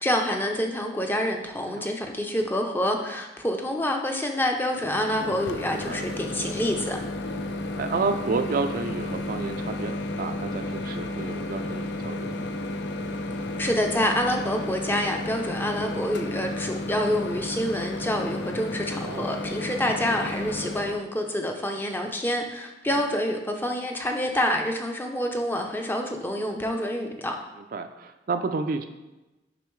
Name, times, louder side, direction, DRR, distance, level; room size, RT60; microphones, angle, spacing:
voice 1, 0.0-7.0 13.6-27.4, left 1 dB, 10° left, 3 dB, 0.5 m, -27 dB
Microwave oven, 4.7-21.0, left 2 dB, 70° left, 0.5 m, -32 dB
voice 2, 5.7-6.0 7.8-12.5 19.0-19.4 27.6-28.8, right 4 dB, 50° right, 7 dB, 0.4 m, -31 dB
6.8 x 5.3 x 3.1 m, 1.1 s
head